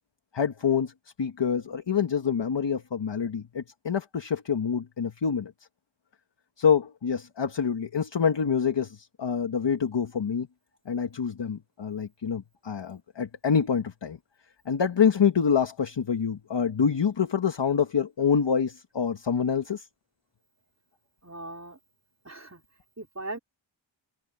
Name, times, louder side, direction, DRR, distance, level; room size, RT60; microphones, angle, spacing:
voice 1, 0.3-0.9 1.2-5.5 6.6-10.5 10.9-14.2 14.7-19.9, left 7 dB, 60° left, 1.3 m, -26 dB
voice 2, 21.2-21.8 22.2-22.6 23.0-23.4, right 2 dB, 35° right, 3.8 m, -39 dB
wide cardioid pair, 70°, 48 cm